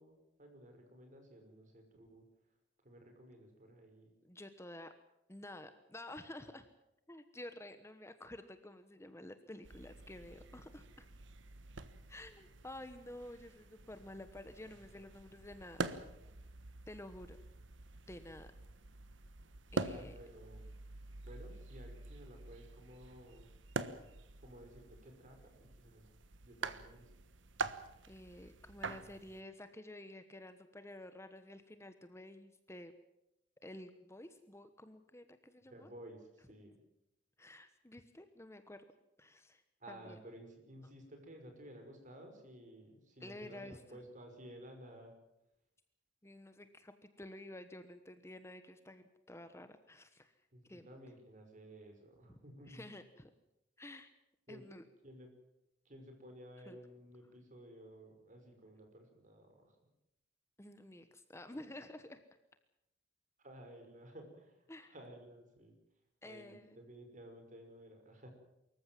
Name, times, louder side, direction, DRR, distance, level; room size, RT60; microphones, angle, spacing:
voice 1, 0.0-2.3 2.8-4.1 19.9-20.8 21.2-23.5 24.4-26.1 26.4-27.1 35.7-36.7 39.8-45.2 50.5-52.9 54.5-54.6 55.0-55.3 55.8-59.8 63.4-65.8 66.2-68.3, right 1 dB, 45° right, 4 dB, 5.7 m, -55 dB
voice 2, 4.2-4.9 5.3-6.7 7.1-11.1 12.1-16.0 16.9-17.4 18.1-18.5 19.7-20.1 28.1-32.9 33.6-35.9 37.4-38.8 39.2-39.6 39.9-40.2 43.2-43.8 46.2-50.3 50.7-50.9 52.3-52.4 52.7-53.3 53.8-54.1 54.5-54.8 56.6-56.8 60.6-62.2 64.7-64.9 66.2-66.8, left 1 dB, 15° left, 9 dB, 1.2 m, -51 dB
sound 1, 9.6-29.4, right 3 dB, 90° right, 1.4 m, -46 dB
24.5 x 14.5 x 9.4 m, 0.88 s
head